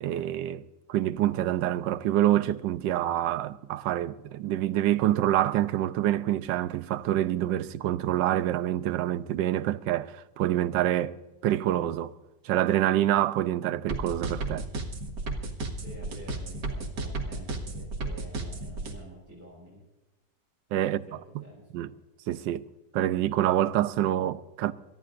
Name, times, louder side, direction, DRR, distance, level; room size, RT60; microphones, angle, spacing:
voice 1, 0.0-0.6 0.9-12.1 12.4-14.7 20.7-21.0 21.3-21.4 21.7-21.9 22.3-22.7 22.9-24.7, right 12 dB, 90° right, 1.3 m, -26 dB
sound 1, 13.9-18.9, right 3 dB, 70° right, 2.3 m, -33 dB
voice 2, 15.8-19.8 20.8-21.8, equal, 10° right, 5.9 m, -49 dB
27.5 x 13.5 x 2.5 m
omnidirectional pair, 1.9 m